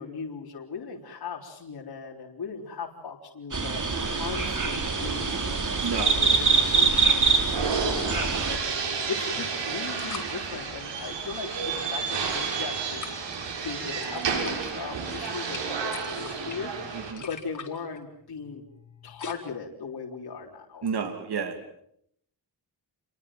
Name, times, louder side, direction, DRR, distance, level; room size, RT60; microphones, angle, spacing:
voice 1, 0.0-5.6 5.9-8.6 8.9-13.1 13.6-16.7 17.0-18.7 19.0-20.9, left 5 dB, 60° left, -1 dB, 4.1 m, -38 dB
sound 1, 3.5-8.6, right 4 dB, 45° right, 4.5 m, -24 dB
sound 2, 3.9-17.1, right 5 dB, 85° right, 7.0 m, -32 dB
sound 3, 8.9-9.0 9.8-10.3 12.0-12.6 13.0-13.4 14.0-14.7 15.0-19.3, left 5 dB, 45° left, 4.8 m, -43 dB
voice 2, 20.8-21.5, right 6 dB, 65° right, 7 dB, 2.9 m, -30 dB
29.0 x 23.5 x 7.7 m, 0.71 s
wide cardioid pair, 100°, 42 cm